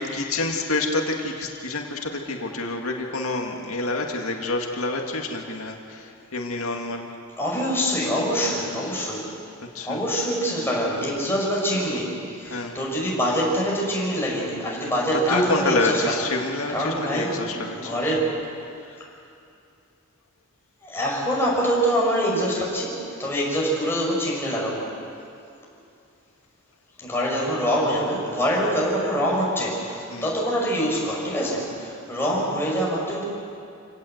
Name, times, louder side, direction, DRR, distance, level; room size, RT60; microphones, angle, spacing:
voice 1, 0.0-7.2 8.8-9.0 9.6-10.0 12.4-12.8 15.3-18.2 18.8-19.0 28.6-28.7 30.1-30.3, left 2 dB, 90° left, 2 dB, 2.1 m, -28 dB
voice 2, 7.4-9.3 9.8-16.3 16.7-18.3 20.8-24.9 27.0-33.2, equal, 10° left, -4 dB, 6.0 m, -25 dB
27.5 x 17.5 x 8.0 m, 2.5 s
head